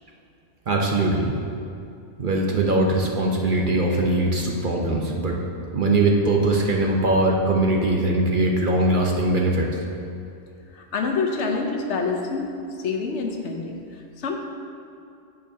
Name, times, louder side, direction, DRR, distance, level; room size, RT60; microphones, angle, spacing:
voice 1, 0.7-1.4 2.2-5.4 5.7-9.7, right 2 dB, 45° right, 0 dB, 0.9 m, -21 dB
voice 2, 10.7-12.5 12.8-14.4, left 4 dB, 70° left, 2 dB, 1.1 m, -27 dB
11.0 x 7.9 x 2.7 m, 2.5 s
omnidirectional pair, 1.3 m